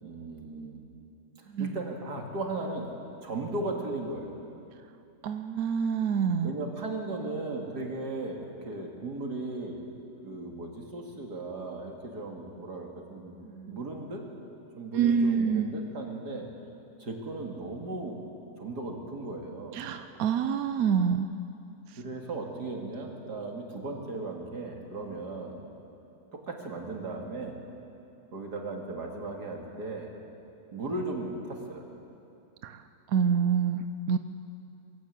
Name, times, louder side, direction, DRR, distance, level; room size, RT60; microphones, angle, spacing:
voice 1, 0.0-0.8 1.6-2.9 3.2-4.3 6.4-9.8 10.2-13.3 13.7-14.3 14.7-16.5 17.0-18.2 18.6-19.9 22.0-25.6 26.3-27.6 28.3-30.1 30.7-31.8, right 2 dB, 85° right, 1 dB, 2.9 m, -36 dB
voice 2, 5.2-6.5 13.4-13.8 14.9-15.7 19.7-21.3 32.6-32.8 33.1-34.2, right 7 dB, 70° right, 9 dB, 1.1 m, -27 dB
22.5 x 16.5 x 8.3 m, 2.7 s
omnidirectional pair, 1.7 m